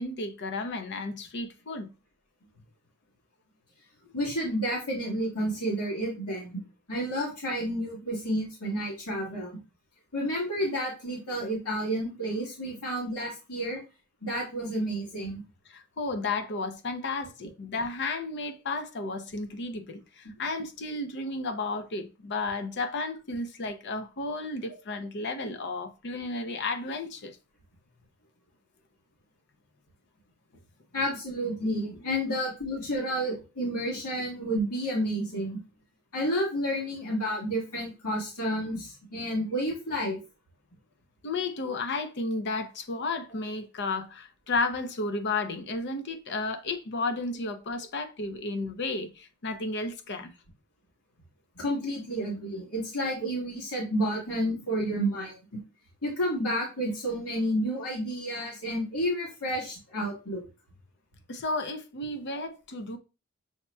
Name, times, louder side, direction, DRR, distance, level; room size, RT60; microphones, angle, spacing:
voice 1, 0.0-1.9 15.7-27.4 41.2-50.3 61.3-63.0, left 3 dB, 50° left, 0.6 m, -33 dB
voice 2, 4.1-6.6 6.9-9.5 10.1-13.8 14.2-15.4 30.9-35.6 36.1-40.2 51.5-55.4 56.0-60.4, equal, 80° left, 1.9 m, -30 dB
7.0 x 2.9 x 2.2 m
head